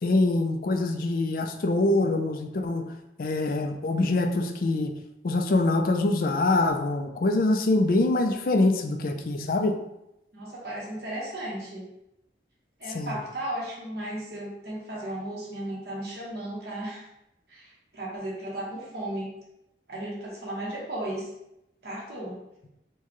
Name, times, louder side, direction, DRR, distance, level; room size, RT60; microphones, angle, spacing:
voice 1, 0.0-2.9 3.2-4.9 5.2-9.7 12.9-13.2, left 2 dB, 50° left, 5 dB, 0.4 m, -24 dB
voice 2, 10.3-11.8 12.8-17.1 17.5-19.3 19.9-21.3 21.8-22.4, right 1 dB, 60° right, -4 dB, 1.2 m, -35 dB
4.6 x 2.2 x 3.0 m, 0.86 s
head